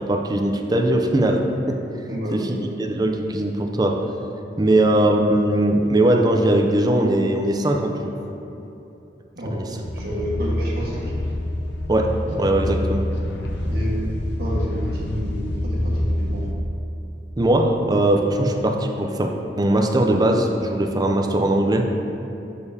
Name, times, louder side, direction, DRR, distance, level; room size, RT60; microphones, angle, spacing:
voice 1, 0.0-1.8 2.3-2.4 2.8-4.0 4.6-8.1 9.5-9.7 11.9-13.1 17.4-19.3 19.6-21.9, right 1 dB, 20° right, 3 dB, 0.5 m, -20 dB
voice 2, 2.1-2.6 4.6-4.8 9.3-9.6 9.9-11.1 13.7-14.0 14.4-16.5 18.3-18.5, equal, 60° right, -5 dB, 1.4 m, -29 dB
sound 1, 9.8-16.5, left 1 dB, 70° left, 0.6 m, -26 dB
6.8 x 6.6 x 2.7 m, 3.0 s
head